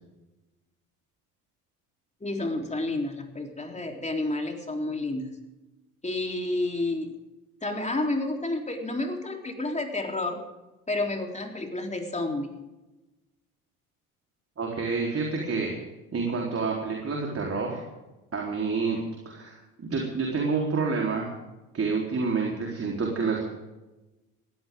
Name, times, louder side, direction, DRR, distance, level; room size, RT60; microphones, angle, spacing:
voice 1, 2.2-5.3 6.0-7.1 7.6-10.4 10.9-12.5, left 2 dB, 15° left, 2 dB, 3.8 m, -30 dB
voice 2, 14.6-15.7 16.1-17.8 18.3-21.3 21.7-23.5, right 4 dB, 30° right, -1 dB, 4.0 m, -28 dB
19.5 x 16.5 x 3.8 m, 1.0 s
hypercardioid pair, 60°, 43 cm